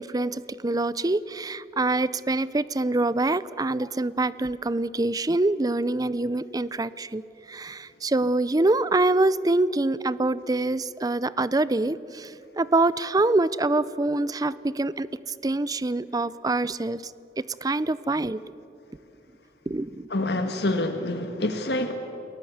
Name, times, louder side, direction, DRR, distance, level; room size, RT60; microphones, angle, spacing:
voice 1, 0.0-7.2 7.5-15.1 15.4-17.0 17.6-18.4 19.7-20.1, right 2 dB, 20° right, 17 dB, 0.5 m, -25 dB
voice 2, 20.1-21.9, left 2 dB, 65° left, 6 dB, 1.6 m, -26 dB
29.5 x 20.5 x 8.0 m, 3.0 s
head